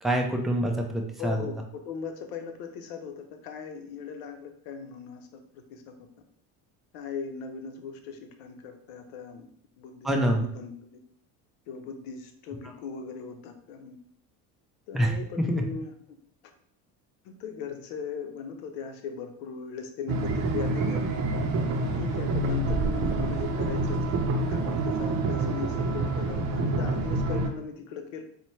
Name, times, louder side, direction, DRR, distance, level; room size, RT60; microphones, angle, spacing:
voice 1, 0.0-1.5 10.0-10.4 14.9-15.6, right 1 dB, ahead, 2 dB, 0.3 m, -26 dB
voice 2, 1.2-5.3 5.5-6.1 6.9-9.5 9.8-11.0 11.7-14.0 14.9-15.9 17.2-21.0 21.8-24.2 24.5-28.2, left 6 dB, 85° left, 6 dB, 0.7 m, -38 dB
sound 1, 20.1-27.5, right 2 dB, 45° right, 0.6 m, -27 dB
4.2 x 2.1 x 3.0 m, 0.64 s
supercardioid pair, 105°, 37 cm